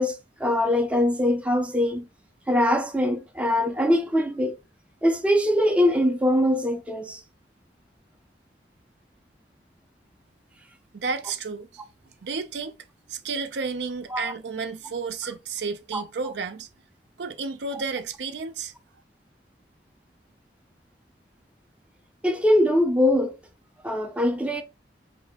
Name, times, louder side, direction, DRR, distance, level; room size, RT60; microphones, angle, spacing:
voice 1, 0.0-2.1 2.5-4.6 5.0-7.2 14.1-14.3 15.9-16.3 22.2-23.4 23.8-24.6, left 1 dB, 5° right, 0.5 m, -22 dB
voice 2, 10.9-11.7 12.2-12.7 13.1-16.7 17.2-18.7, right 4 dB, 75° right, 0.5 m, -31 dB
4.3 x 2.7 x 3.4 m
head